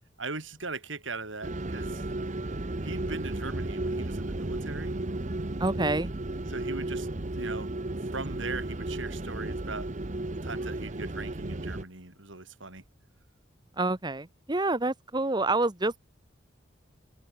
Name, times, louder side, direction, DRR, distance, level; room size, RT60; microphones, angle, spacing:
voice 1, 0.2-2.0 2.8-4.9 6.5-7.1 7.3-7.7 8.1-9.9 10.4-12.8, right 3 dB, 85° right, 5.5 m, -39 dB
sound 1, 1.4-11.8, right 2 dB, 40° right, 1.1 m, -34 dB
voice 2, 5.6-6.1 13.8-16.0, right 2 dB, 25° right, 1.3 m, -27 dB
head